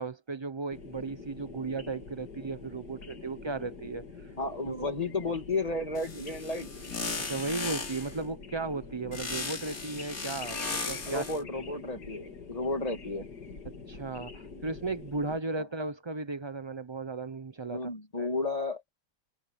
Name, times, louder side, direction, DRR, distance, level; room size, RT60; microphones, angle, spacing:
voice 1, 0.0-4.1 4.7-4.8 7.2-11.2 13.9-17.9 18.2-18.3, right 3 dB, 35° right, 0.4 m, -35 dB
sound 1, 0.7-15.4, left 4 dB, 85° left, 3.2 m, -46 dB
voice 2, 4.4-6.7 11.1-13.3 17.7-18.8, left 3 dB, 25° left, 2.5 m, -32 dB
sound 2, 6.0-8.2 9.1-11.4, left 4 dB, 60° left, 3.4 m, -37 dB
omnidirectional pair, 1.7 m